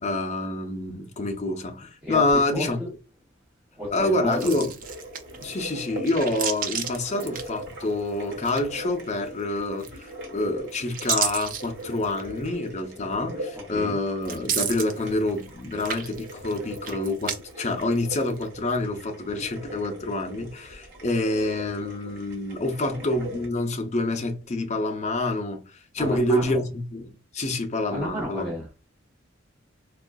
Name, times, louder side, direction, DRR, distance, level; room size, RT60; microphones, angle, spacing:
voice 1, 0.0-2.8 3.9-4.7 5.4-28.5, left 2 dB, 35° left, 0.5 m, -27 dB
voice 2, 2.0-2.9 3.8-4.5 13.7-14.0 26.0-26.6 27.9-28.9, equal, 10° right, 0.8 m, -32 dB
sound 1, 4.3-5.5 6.0-8.0 8.3-9.0 9.8-10.3 10.7-12.3 12.9-13.0 14.2-15.5 15.7-17.4 17.7-18.4, right 7 dB, 45° right, 0.4 m, -31 dB
sound 2, 4.8-23.5, equal, 60° right, 1.2 m, -41 dB
3.6 x 2.3 x 2.2 m
head